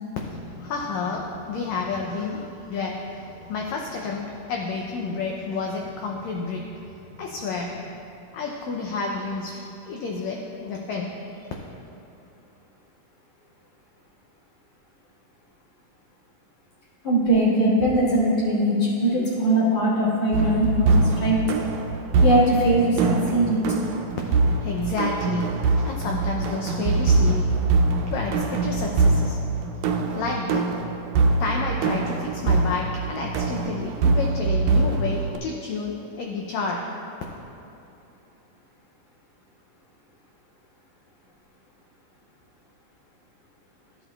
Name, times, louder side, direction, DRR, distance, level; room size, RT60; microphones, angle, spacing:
voice 1, 0.2-6.7 7.1-7.9 8.3-9.6 9.8-11.1 11.4-11.5 24.6-27.6 28.0-29.4 30.1-36.8, left 4 dB, 85° left, 0 dB, 1.5 m, -30 dB
voice 2, 17.0-21.4 22.2-23.6, right 1 dB, 55° left, -10 dB, 3.0 m, -21 dB
sound 1, 20.3-35.4, right 3 dB, 85° right, 1.6 m, -23 dB
12.5 x 7.5 x 2.3 m, 2.8 s
omnidirectional pair, 3.8 m